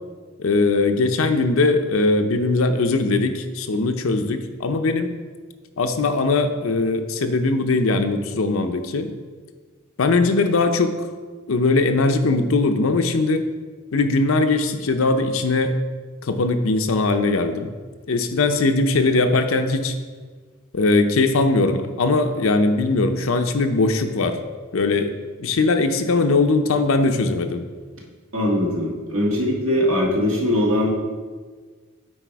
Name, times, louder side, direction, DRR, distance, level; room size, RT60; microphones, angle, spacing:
voice 1, 0.4-5.1 5.8-9.1 10.0-11.0 11.5-13.5 13.9-15.7 16.2-17.7 18.1-19.9 20.7-24.4 24.7-25.1 25.4-27.6, left 3 dB, 80° left, 7 dB, 0.6 m, -20 dB
voice 2, 28.3-30.9, left 1 dB, 80° right, -3 dB, 1.8 m, -21 dB
8.9 x 4.2 x 4.6 m, 1.5 s
head